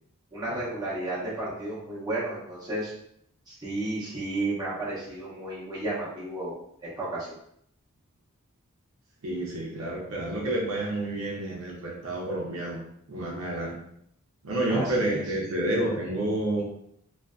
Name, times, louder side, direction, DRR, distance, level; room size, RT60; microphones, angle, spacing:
voice 1, 0.3-2.9 3.5-6.5 6.8-7.3 14.7-15.2, right 2 dB, 20° right, -8 dB, 0.9 m, -32 dB
voice 2, 9.2-12.8 13.1-13.8 14.4-16.6, right 1 dB, 70° right, -3 dB, 0.6 m, -29 dB
2.5 x 2.3 x 2.3 m, 0.71 s
head